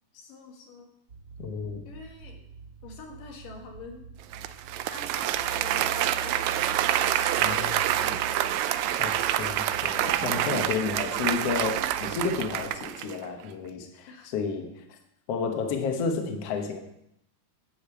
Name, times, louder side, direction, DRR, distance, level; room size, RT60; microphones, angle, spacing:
voice 1, 0.1-0.9 1.8-2.4 2.8-4.1 4.9-6.8 7.1-7.4 14.1-14.3, left 4 dB, 75° left, 0 dB, 3.4 m, -46 dB
sound 1, 1.1-12.8, right 3 dB, 45° right, 2.2 m, -44 dB
voice 2, 1.4-1.9 7.4-8.2 9.0-14.7 15.3-16.8, left 5 dB, 60° left, 4 dB, 1.8 m, -31 dB
Applause, 4.3-13.2, right 12 dB, 90° right, 1.6 m, -27 dB
11.5 x 5.2 x 8.0 m, 0.78 s
omnidirectional pair, 3.9 m